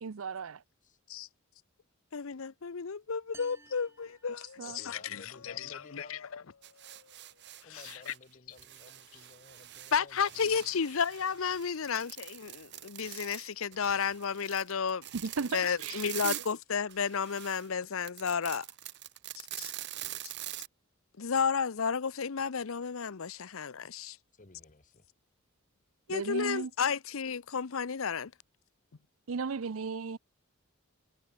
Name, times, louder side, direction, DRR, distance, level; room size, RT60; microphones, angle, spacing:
voice 1, 0.0-0.6 4.6-4.8 15.1-16.4 26.1-26.7 29.3-30.2, right 5 dB, 75° right, 0.6 m, -36 dB
voice 2, 2.1-6.4 6.9-7.0 7.7-8.1 9.9-15.1 15.5-18.7 19.6-19.7 21.2-24.2 26.1-28.3, left 6 dB, 70° left, 0.7 m, -32 dB
sound 1, 3.3-5.1, right 3 dB, 10° right, 1.1 m, -57 dB
voice 3, 4.6-6.2 7.6-10.4 20.0-20.2 24.3-25.1, left 3 dB, 40° left, 1.4 m, -55 dB
sound 2, 6.6-8.2 8.5-16.6 16.9-20.7, right 14 dB, 55° right, 1.2 m, -44 dB
head